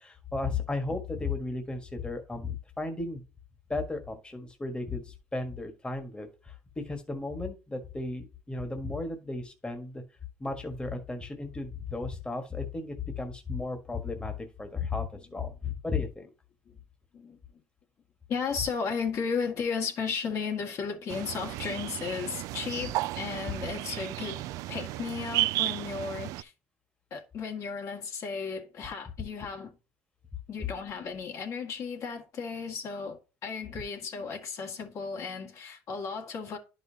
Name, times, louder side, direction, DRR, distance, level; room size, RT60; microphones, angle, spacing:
voice 1, 0.0-3.2 3.7-10.0 10.4-16.3, left 3 dB, 15° left, 1.5 m, -35 dB
voice 2, 18.3-24.4 24.7-26.5 27.1-29.7 30.5-36.6, left 5 dB, 60° left, 2.0 m, -34 dB
sound 1, 21.1-26.4, right 17 dB, 75° right, 0.4 m, -33 dB
10.5 x 5.3 x 2.8 m
supercardioid pair, 85°, 6 cm